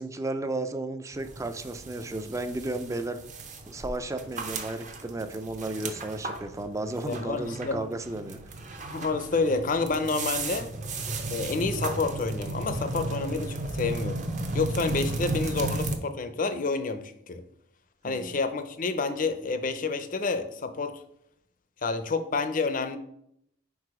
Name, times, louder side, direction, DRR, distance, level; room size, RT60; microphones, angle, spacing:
voice 1, 0.0-3.2 3.7-8.4 18.0-18.4, right 2 dB, 15° right, 10 dB, 0.4 m, -33 dB
sound 1, 1.1-16.0, right 2 dB, 40° right, 0.7 m, -35 dB
voice 2, 7.0-7.8 8.9-10.7 11.3-14.3 14.5-17.4 18.0-21.0 21.8-23.0, left 4 dB, 45° left, 10 dB, 0.5 m, -29 dB
4.7 x 4.6 x 4.9 m, 0.74 s
head